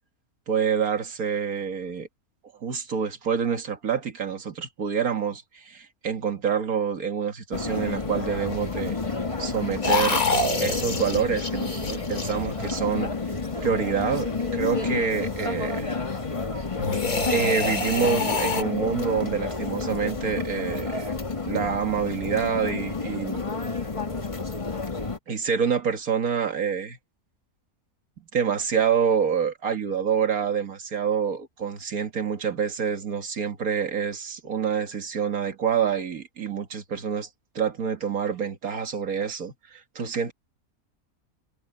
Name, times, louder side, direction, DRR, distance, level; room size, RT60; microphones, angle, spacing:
voice 1, 0.5-2.1 2.6-9.0 9.4-10.3 10.6-13.2 13.6-16.0 17.3-21.2 21.4-23.5 25.3-27.0 28.3-37.3 37.5-40.3, right 7 dB, 75° right, 2.2 m, -27 dB
sound 1, 7.5-25.2, left 4 dB, 20° left, 1.6 m, -30 dB
sound 2, 9.8-13.0 16.8-18.6, left 3 dB, 70° left, 3.5 m, -27 dB
omnidirectional pair, 1.5 m